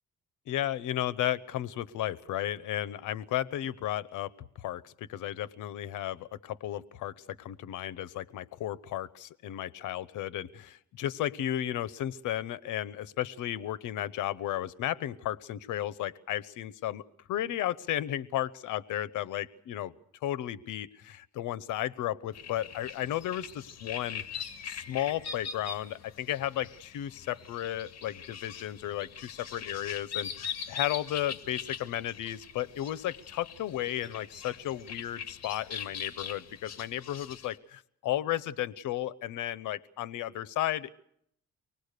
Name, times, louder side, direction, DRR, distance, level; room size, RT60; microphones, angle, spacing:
voice 1, 0.5-4.3 4.6-19.9 20.2-40.9, left 12 dB, 85° left, 18 dB, 0.9 m, -34 dB
sound 1, 22.3-37.6, left 7 dB, 60° left, 2.0 m, -42 dB
25.0 x 19.5 x 6.7 m, 0.71 s
cardioid pair, 90°, 30 cm